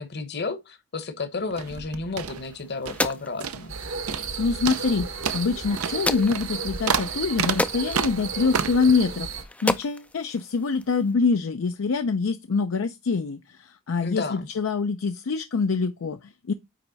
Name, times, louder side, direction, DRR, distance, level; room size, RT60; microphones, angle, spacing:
voice 1, 0.0-3.7 14.0-14.5, left 3 dB, 50° left, 1.0 m, -32 dB
sound 1, 1.5-3.1 3.4-3.8 4.1-4.4 4.7-8.9, right 7 dB, 85° right, 0.7 m, -30 dB
sound 2, 2.2-11.1, left 2 dB, 5° left, 0.3 m, -34 dB
sound 3, 3.7-9.4, right 5 dB, 65° right, 1.2 m, -34 dB
voice 2, 4.1-9.3 9.6-16.5, left 4 dB, 65° left, 0.5 m, -25 dB
9.2 x 3.2 x 3.9 m
head